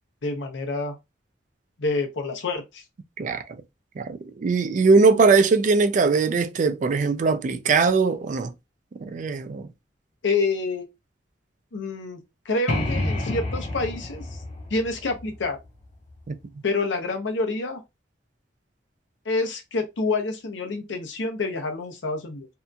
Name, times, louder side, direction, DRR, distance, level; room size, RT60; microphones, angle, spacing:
voice 1, 0.2-1.0 1.8-2.8 10.2-10.9 11.7-14.4 14.7-15.6 16.6-17.8 19.2-22.5, left 3 dB, 90° left, 0.7 m, -27 dB
voice 2, 4.0-8.5 9.0-9.7 16.3-16.4, right 4 dB, 45° right, 0.3 m, -20 dB
sound 1, 12.7-16.3, left 1 dB, 40° left, 0.7 m, -30 dB
2.7 x 2.5 x 2.2 m
head